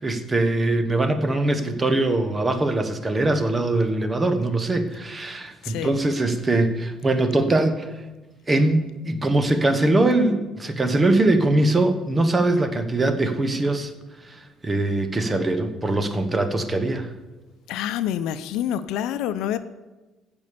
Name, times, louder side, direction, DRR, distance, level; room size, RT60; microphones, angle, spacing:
voice 1, 0.0-7.9 8.5-13.9 14.2-17.1, right 2 dB, 20° right, 8 dB, 1.2 m, -22 dB
voice 2, 5.6-6.0 17.7-19.6, left 10 dB, 80° left, 12 dB, 0.6 m, -27 dB
15.5 x 5.3 x 6.9 m, 1.1 s
cardioid pair, 110°, 0 cm